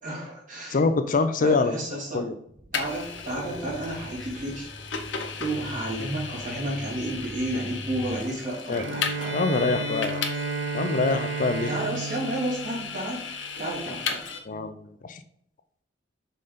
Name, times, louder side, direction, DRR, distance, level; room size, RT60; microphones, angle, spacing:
voice 1, 0.0-0.8 1.4-2.2 2.7-4.7 5.4-9.4 11.7-13.2 13.6-14.3, right 1 dB, 45° right, -4 dB, 2.7 m, -31 dB
voice 2, 0.7-1.7 2.1-2.4 8.7-8.9 9.3-10.2 10.7-11.7 14.5-14.7 15.1-15.2, left 3 dB, 45° left, 10 dB, 0.4 m, -24 dB
sound 1, 2.5-8.2, left 1 dB, 15° right, 0.8 m, -42 dB
Vehicle, 2.7-14.4, left 6 dB, 75° left, 0.9 m, -36 dB
Bowed string instrument, 8.7-13.7, right 4 dB, 65° right, 0.5 m, -33 dB
5.6 x 4.0 x 5.0 m, 0.69 s
head